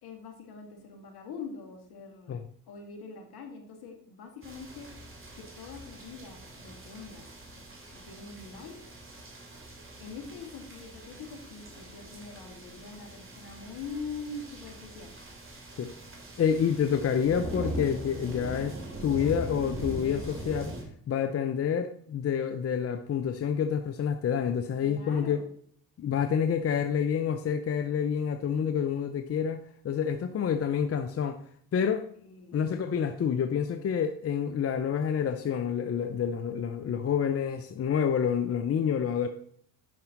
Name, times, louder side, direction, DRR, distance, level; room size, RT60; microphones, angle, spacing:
voice 1, 0.0-2.4 2.7-4.9 5.3-7.3 7.9-8.8 10.0-15.1 24.8-25.5 32.2-32.6, left 4 dB, 60° left, 3 dB, 2.2 m, -43 dB
sound 1, 4.4-20.8, right 1 dB, 30° right, 2.8 m, -42 dB
voice 2, 16.4-18.8 19.0-20.7 21.1-25.4 26.0-31.4 31.7-32.1 32.5-39.3, left 7 dB, 35° left, 8 dB, 0.7 m, -28 dB
9.5 x 5.8 x 3.9 m, 0.62 s
hypercardioid pair, 65°, 42 cm